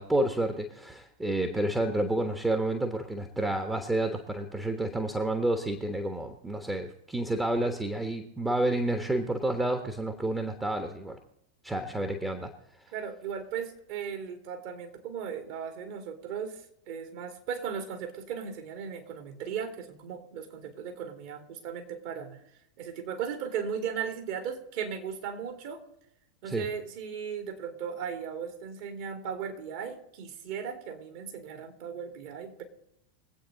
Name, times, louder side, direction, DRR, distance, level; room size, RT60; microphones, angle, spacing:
voice 1, 0.0-11.2 11.6-12.5 26.5-26.7, right 1 dB, 10° right, 6 dB, 1.4 m, -30 dB
voice 2, 12.9-22.4 22.8-25.8 26.4-32.6, right 7 dB, 50° right, 5 dB, 2.9 m, -37 dB
23.5 x 8.6 x 4.0 m, 0.80 s
figure-of-eight pair, 90°, 0 cm